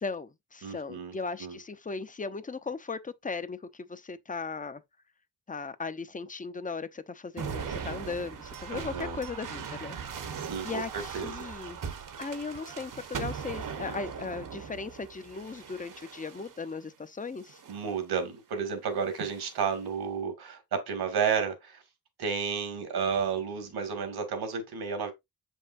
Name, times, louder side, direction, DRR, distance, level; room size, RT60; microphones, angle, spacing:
voice 1, 0.0-4.8 5.5-9.9 10.2-10.4 10.6-17.6, left 4 dB, 20° left, 0.6 m, -37 dB
voice 2, 0.6-1.6 8.7-9.2 10.3-11.5 17.7-21.8 22.2-25.1, right 6 dB, 85° right, 2.1 m, -32 dB
sound 1, 7.4-16.7 17.4-18.0 19.1-19.7, right 6 dB, 55° right, 1.0 m, -40 dB
6.8 x 5.5 x 2.5 m
cardioid pair, 90°, 37 cm